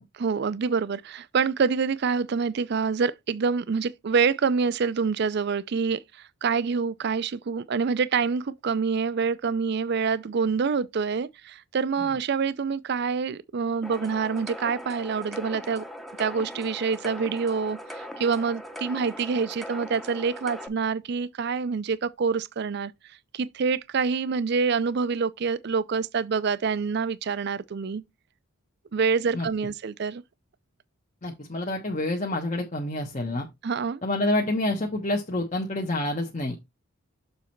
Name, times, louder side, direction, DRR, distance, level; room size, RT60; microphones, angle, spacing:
voice 1, 0.1-15.8 16.2-28.0 28.9-30.2 33.6-34.0, right 5 dB, 55° right, 0.4 m, -26 dB
sound 1, 13.8-20.7, equal, ahead, 0.7 m, -40 dB
voice 2, 31.2-33.5 34.0-36.6, left 1 dB, 35° left, 1.1 m, -28 dB
7.1 x 4.1 x 4.5 m
head